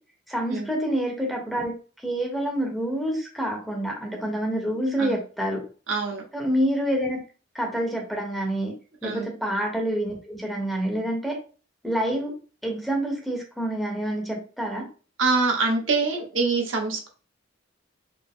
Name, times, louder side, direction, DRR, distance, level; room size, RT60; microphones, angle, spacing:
voice 1, 0.3-1.8 2.0-5.7 6.3-7.2 7.5-8.8 9.0-11.4 11.8-12.4 12.6-14.9, right 1 dB, ahead, -1 dB, 1.0 m, -27 dB
voice 2, 5.9-6.2 9.0-9.3 15.2-17.1, right 4 dB, 85° right, 1 dB, 1.0 m, -24 dB
4.4 x 2.1 x 3.5 m, 0.36 s
head